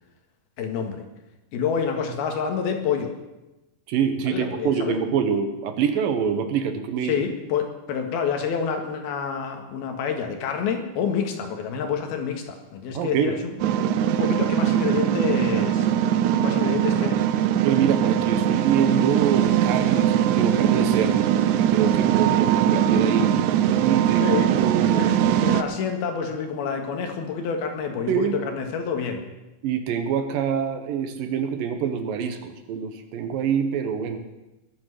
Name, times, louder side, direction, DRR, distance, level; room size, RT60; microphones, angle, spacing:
voice 1, 0.6-1.1 1.5-3.1 4.3-5.0 7.0-13.6 14.1-15.9 16.4-17.2 24.2-24.5 24.8-29.2, left 6 dB, 85° left, 4 dB, 3.6 m, -28 dB
voice 2, 3.9-7.2 12.9-13.4 17.5-21.3 21.6-23.3 23.8-25.0 28.1-28.4 29.6-34.2, right 7 dB, 70° right, 8 dB, 2.7 m, -25 dB
sound 1, 13.6-25.6, right 10 dB, 90° right, 1.7 m, -21 dB
21.0 x 8.1 x 6.6 m, 1.0 s
omnidirectional pair, 4.3 m